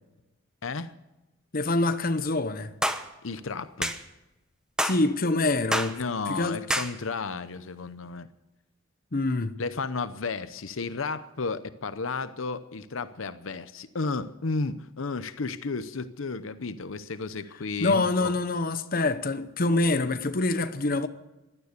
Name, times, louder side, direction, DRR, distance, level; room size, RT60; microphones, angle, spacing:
voice 1, 0.6-0.9 3.2-4.0 6.0-8.3 9.6-18.3, left 4 dB, 75° left, 0.8 m, -33 dB
voice 2, 1.5-2.7 4.8-6.0 6.3-6.6 9.1-9.5 17.8-21.1, left 2 dB, 45° left, 0.8 m, -25 dB
sound 1, 2.8-3.0 3.8-4.0 4.8-5.0 5.7-5.9 6.7-6.9, equal, 5° right, 1.0 m, -27 dB
16.5 x 12.0 x 6.7 m
head